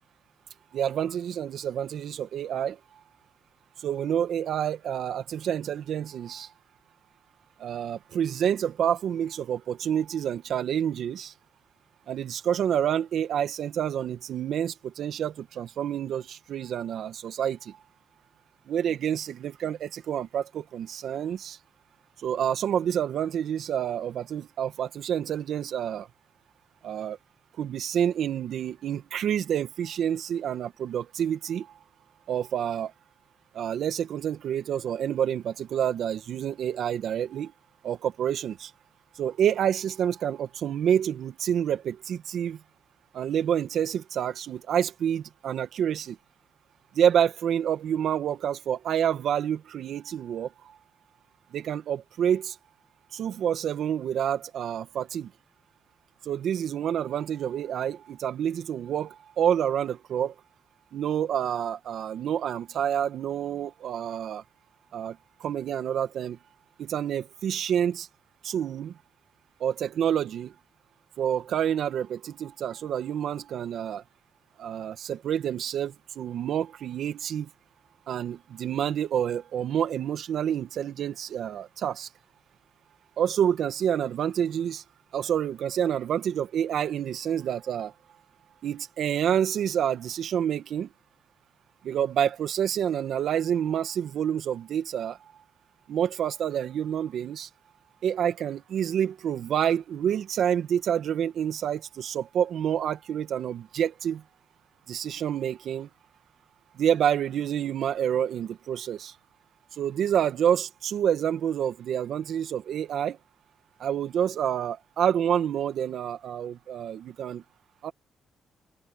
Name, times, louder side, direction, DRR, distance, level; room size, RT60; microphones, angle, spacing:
voice 1, 0.7-2.8 3.8-6.5 7.6-11.3 12.1-17.8 18.7-21.6 22.2-26.1 26.8-27.2 27.6-31.7 32.3-32.9 33.5-37.5 37.8-38.7 39.2-42.6 43.1-46.2 47.0-50.5 51.5-52.6 53.1-55.3 56.3-60.3 60.9-64.4 64.9-66.4 66.8-68.1 68.4-68.9 69.6-70.5 71.2-74.0 74.6-77.5 78.1-82.1 83.2-84.8 85.1-87.9 88.6-90.9 91.8-95.2 95.9-97.5 98.0-104.2 104.9-105.9 106.8-109.1 109.8-113.2 113.8-117.4 117.8-117.9, right 9 dB, 70° right, 1.9 m, -28 dB
open air
cardioid pair, 90°, 0 cm